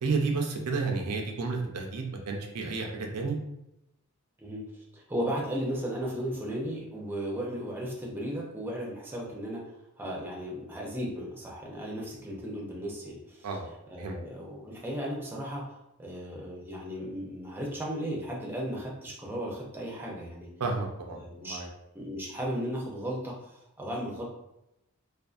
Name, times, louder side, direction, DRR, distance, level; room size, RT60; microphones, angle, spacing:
voice 1, 0.0-3.4 13.4-13.7 14.0-14.2 20.6-21.7, right 4 dB, 90° right, 2 dB, 0.5 m, -31 dB
voice 2, 4.4-13.5 13.9-20.5 21.1-21.6 21.9-24.2, equal, 10° right, -3 dB, 0.4 m, -35 dB
2.5 x 2.3 x 2.3 m, 0.85 s
head